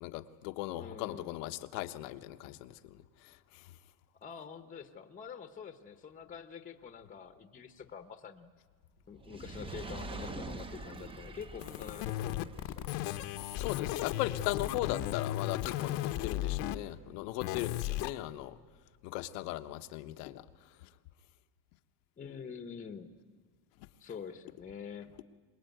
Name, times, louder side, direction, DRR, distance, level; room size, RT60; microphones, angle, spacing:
voice 1, 0.0-3.0 13.5-18.6 19.0-20.4, left 15 dB, 90° left, 1.2 m, -38 dB
voice 2, 0.8-1.4 4.2-8.5 9.1-13.0 22.2-23.1 24.0-25.2, left 6 dB, 15° left, 0.9 m, -46 dB
Fire, 9.1-15.6 16.2-16.3, right 2 dB, 10° right, 0.7 m, -46 dB
sound 1, 11.6-16.8 17.4-18.1, left 14 dB, 55° left, 1.0 m, -35 dB
24.0 x 21.0 x 9.2 m
cardioid pair, 155°, 47 cm